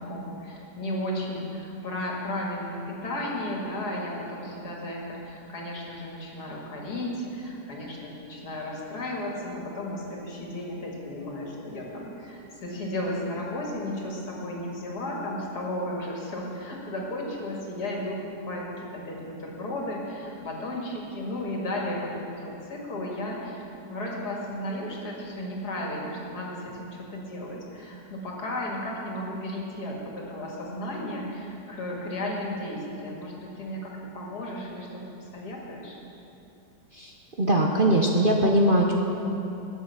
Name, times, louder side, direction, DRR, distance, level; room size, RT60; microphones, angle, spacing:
voice 1, 0.0-23.6 23.9-36.0, left 1 dB, 65° left, -2 dB, 2.6 m, -34 dB
voice 2, 37.4-38.9, right 1 dB, 40° right, 0 dB, 0.9 m, -21 dB
20.5 x 7.7 x 5.8 m, 2.8 s
omnidirectional pair, 1.9 m